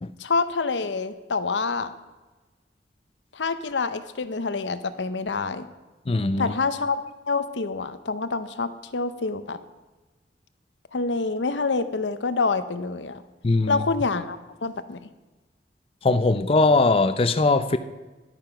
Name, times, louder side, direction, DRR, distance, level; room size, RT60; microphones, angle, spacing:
voice 1, 0.2-1.9 3.3-5.7 6.4-9.6 10.9-13.2 13.7-15.0, left 4 dB, 90° left, 12 dB, 0.7 m, -27 dB
voice 2, 6.1-6.5 13.4-13.8 16.0-17.8, left 3 dB, 30° left, 10 dB, 0.5 m, -20 dB
11.0 x 9.0 x 5.8 m, 1.2 s
head